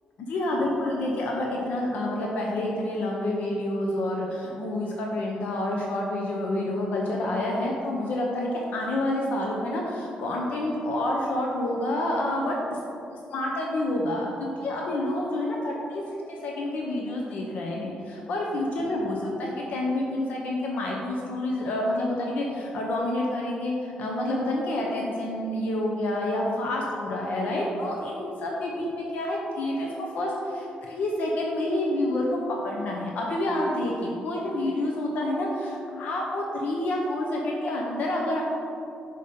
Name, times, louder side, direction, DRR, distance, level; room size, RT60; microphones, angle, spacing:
voice 1, 0.2-12.8 13.3-16.0 16.3-38.4, left 1 dB, 65° left, -2 dB, 0.7 m, -28 dB
5.1 x 5.0 x 4.2 m, 2.7 s
cardioid pair, 170°, 3 cm